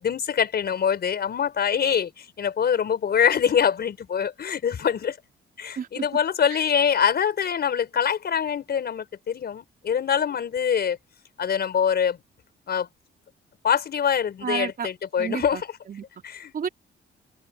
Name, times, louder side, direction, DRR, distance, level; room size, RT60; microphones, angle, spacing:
voice 1, 0.0-5.2 5.6-11.0 11.4-12.2 12.7-12.9 13.6-15.6 16.2-16.5, left 8 dB, 55° left, 5.1 m, -24 dB
voice 2, 14.4-14.9 15.2-16.0 16.5-16.7, right 7 dB, 45° right, 3.1 m, -31 dB
cardioid pair, 90°, 20 cm